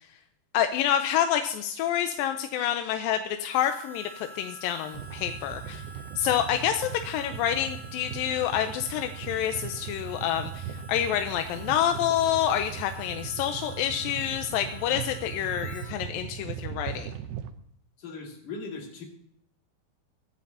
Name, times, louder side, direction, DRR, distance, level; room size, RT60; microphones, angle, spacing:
voice 1, 0.5-5.8 6.2-17.1, left 10 dB, 80° left, 7 dB, 2.3 m, -28 dB
Harmonica, 3.5-15.9, left 1 dB, 50° right, 4.2 m, -48 dB
sound 1, 4.9-17.5, right 9 dB, 90° right, 2.8 m, -39 dB
voice 2, 18.0-19.0, left 4 dB, 60° left, 0 dB, 3.8 m, -39 dB
22.5 x 9.3 x 2.8 m, 0.69 s
omnidirectional pair, 4.4 m